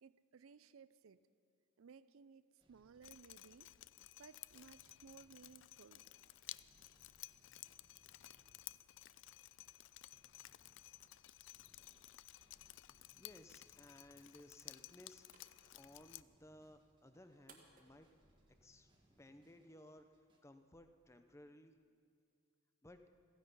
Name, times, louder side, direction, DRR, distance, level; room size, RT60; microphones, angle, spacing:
voice 1, 0.0-1.2 1.8-3.7 4.2-6.0, right 6 dB, 75° right, 16 dB, 0.5 m, -60 dB
sound 1, 2.6-20.4, equal, 25° right, 1.6 m, -75 dB
Drip, 3.0-16.2, left 16 dB, 60° left, 0.3 m, -56 dB
voice 2, 13.2-15.2 15.7-18.1 18.6-20.1 20.4-21.8 22.8-23.0, left 1 dB, 15° left, 8 dB, 0.7 m, -60 dB
sound 2, 14.6-19.7, right 4 dB, 40° right, 1.6 m, -70 dB
15.5 x 15.5 x 5.5 m, 2.2 s
head